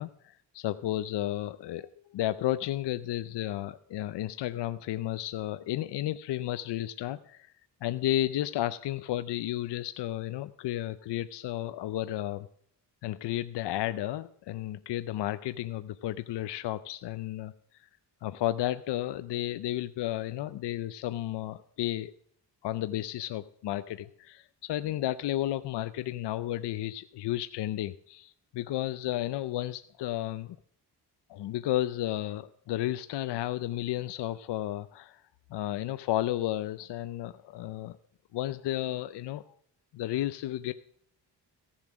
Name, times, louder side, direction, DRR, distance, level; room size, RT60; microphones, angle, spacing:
voice 1, 0.0-7.5 7.8-12.5 13.0-17.5 17.8-17.9 18.2-22.1 22.6-30.6 31.3-35.2 35.5-38.0 38.3-39.4 39.9-40.7, left 14 dB, 75° left, 13 dB, 0.6 m, -32 dB
15.0 x 7.2 x 6.1 m, 0.66 s
cardioid pair, 90°, 42 cm